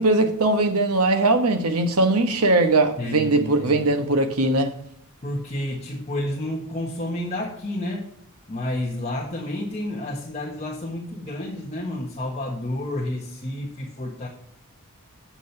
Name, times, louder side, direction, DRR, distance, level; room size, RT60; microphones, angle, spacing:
voice 1, 0.0-4.8, right 2 dB, 80° right, 1.2 m, -20 dB
voice 2, 3.0-3.8 5.2-8.1 8.5-14.3, left 1 dB, 30° left, 1.4 m, -30 dB
8.5 x 6.1 x 5.8 m
head